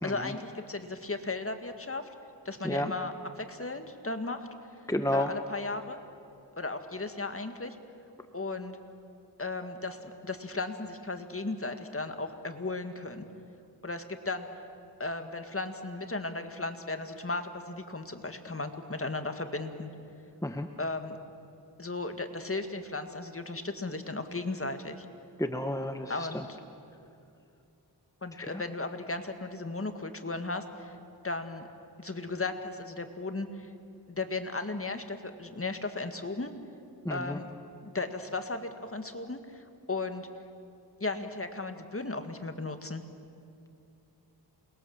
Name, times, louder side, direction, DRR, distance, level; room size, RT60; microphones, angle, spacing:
voice 1, 0.0-2.1 2.5-4.5 5.1-6.0 6.6-7.8 8.3-8.8 9.4-13.3 13.8-14.5 15.0-19.9 20.8-21.2 21.8-25.1 26.1-26.6 28.2-31.0 31.2-31.7 32.0-33.7 34.1-36.5 37.1-37.5 37.8-40.3 41.0-43.0, left 3 dB, 30° left, 7 dB, 1.9 m, -36 dB
voice 2, 4.9-5.3 20.4-20.7 25.4-26.3 28.4-28.5 37.0-37.4, left 1 dB, 10° left, 6 dB, 1.1 m, -31 dB
28.0 x 21.0 x 7.3 m, 2.6 s
cardioid pair, 60°, 43 cm